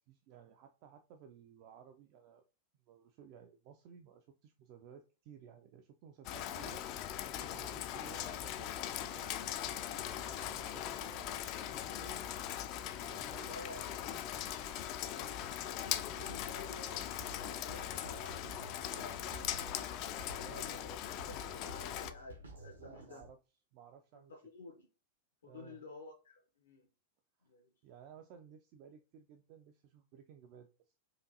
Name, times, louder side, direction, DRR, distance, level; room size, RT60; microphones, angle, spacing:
voice 1, 0.0-2.4 2.9-6.9 7.4-9.8 10.2-12.3 13.0-14.5 15.3-15.6 20.2-20.8 21.8-22.2 22.7-23.4 23.7-24.3 25.4-25.8 27.8-30.9, right 7 dB, 45° right, 0.4 m, -57 dB
Rain, 6.3-22.1, left 11 dB, 40° left, 0.4 m, -40 dB
voice 2, 13.5-14.5 15.0-15.4 15.7-21.0 21.3-23.2 24.3-24.9 25.4-26.9 27.5-27.7, left 3 dB, 65° left, 0.7 m, -52 dB
Drum kit, 16.1-23.3, left 1 dB, 75° right, 1.0 m, -52 dB
4.8 x 2.5 x 2.7 m
figure-of-eight pair, 90°, 0 cm